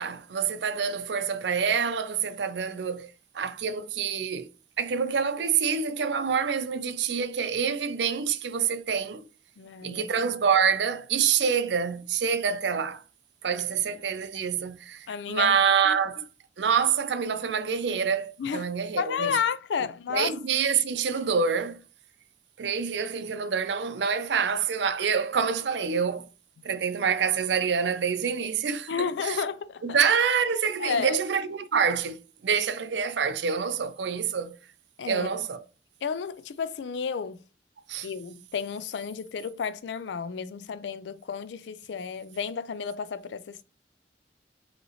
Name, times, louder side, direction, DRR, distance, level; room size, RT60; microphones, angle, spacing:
voice 1, 0.0-3.1 3.3-4.5 4.8-9.3 9.8-13.0 13.4-16.2 16.6-19.4 20.1-21.8 22.6-26.3 26.6-28.9 29.2-29.4 29.8-34.6 35.1-35.6 37.9-38.1, right 6 dB, 80° right, 0.5 m, -26 dB
voice 2, 9.6-10.1 15.1-15.6 15.8-16.0 18.4-18.7 19.0-20.3 26.6-26.7 28.9-30.0 30.8-31.2 35.0-35.3 36.0-37.4 38.0-43.6, left 6 dB, 85° left, 0.4 m, -32 dB
5.3 x 2.9 x 2.9 m
head